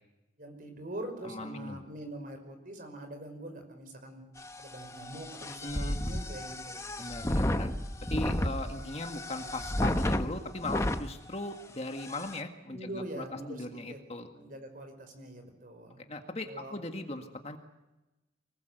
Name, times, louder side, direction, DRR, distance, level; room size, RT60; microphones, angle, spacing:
voice 1, 0.4-4.2 4.6-6.9 12.7-14.0 14.3-16.0 16.5-16.8, right 1 dB, 45° right, 6 dB, 5.3 m, -43 dB
voice 2, 1.2-1.8 5.6-6.1 7.0-7.7 8.1-14.3 16.1-17.6, left 2 dB, 35° left, 5 dB, 1.8 m, -38 dB
sound 1, 4.4-11.1 11.6-11.7 12.0-12.4, left 1 dB, 15° left, 1.0 m, -32 dB
24.5 x 20.0 x 8.0 m, 1.0 s
head